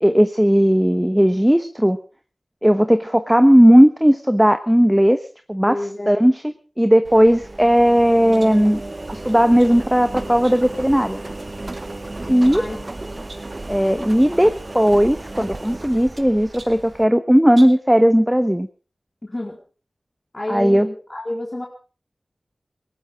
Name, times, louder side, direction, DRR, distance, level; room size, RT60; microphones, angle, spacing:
voice 1, 0.0-2.0 2.6-5.2 5.5-5.8 6.1-6.3 6.8-8.8 9.2-11.2 12.3-12.6 13.7-18.7 20.5-20.9, equal, 5° right, 9 dB, 1.2 m, -16 dB
voice 2, 5.6-6.2 12.5-12.8 13.1-13.2 19.2-19.6 20.3-21.7, left 1 dB, 35° left, -1 dB, 4.2 m, -29 dB
Engine, 7.0-17.0, right 2 dB, 40° right, 0.8 m, -34 dB
sound 1, 8.3-8.6 9.3-9.8 10.4-10.9 11.4-11.9 12.4-12.8 13.3-13.6 14.2-14.4 14.6-14.7 15.6-16.2 16.5-16.9 17.5-17.9, right 2 dB, 60° right, 3.2 m, -45 dB
20.0 x 17.5 x 3.7 m, 0.37 s
cardioid pair, 45°, 0 cm